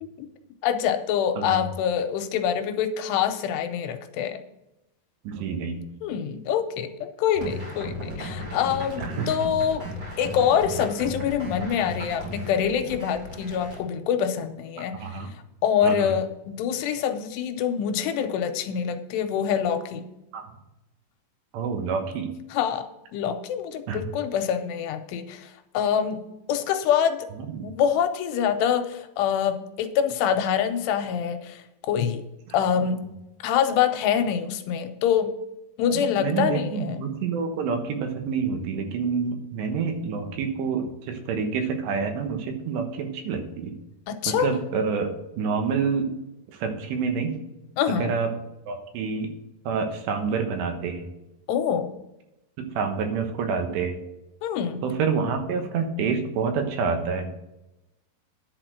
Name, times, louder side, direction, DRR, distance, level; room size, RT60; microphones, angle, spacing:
voice 1, 0.6-4.4 6.0-9.8 10.2-15.0 15.6-20.1 22.5-22.9 23.1-25.5 25.7-26.2 26.5-27.3 27.6-32.2 32.5-33.0 33.4-35.3 35.8-37.0 44.1-44.5 47.8-48.1 51.5-51.9 54.4-54.8, left 8 dB, 85° left, 8 dB, 2.8 m, -25 dB
voice 2, 5.3-5.9 9.0-9.3 14.8-15.3 15.8-16.1 20.3-20.5 21.5-22.3 23.9-24.0 27.5-27.7 36.0-43.8 44.3-46.1 46.5-47.4 47.9-48.3 48.7-49.3 49.7-51.0 52.8-54.0 54.8-57.3, right 5 dB, 85° right, 5 dB, 3.4 m, -28 dB
sound 1, 7.4-13.8, left 1 dB, 30° right, 2.2 m, -35 dB
10.5 x 4.4 x 7.8 m, 0.92 s
omnidirectional pair, 4.9 m